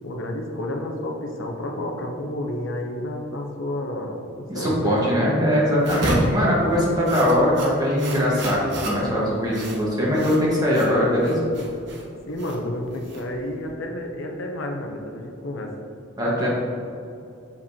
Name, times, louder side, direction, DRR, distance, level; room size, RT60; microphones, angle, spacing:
voice 1, 0.0-5.4 12.3-15.7, left 1 dB, 65° left, 2 dB, 0.6 m, -30 dB
voice 2, 4.5-11.4 16.2-16.5, equal, 20° right, -6 dB, 1.3 m, -21 dB
sound 1, 5.8-13.7, right 1 dB, 55° right, 0.9 m, -32 dB
6.8 x 5.1 x 2.8 m, 2.6 s
head